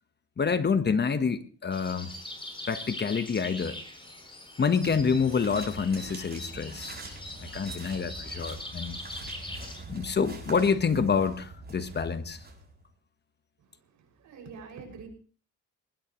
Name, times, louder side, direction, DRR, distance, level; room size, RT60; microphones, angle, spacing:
voice 1, 0.4-2.1 2.7-3.8 4.6-7.0 7.4-9.0 9.9-12.4, left 5 dB, 35° left, 1.3 m, -27 dB
sound 1, 1.7-9.8, left 1 dB, 15° left, 7.1 m, -42 dB
sound 2, 4.8-12.9, right 2 dB, 30° right, 7.1 m, -44 dB
voice 2, 13.6-15.1, right 5 dB, 75° right, 6.3 m, -46 dB
20.5 x 19.5 x 3.1 m
cardioid pair, 90°, 30 cm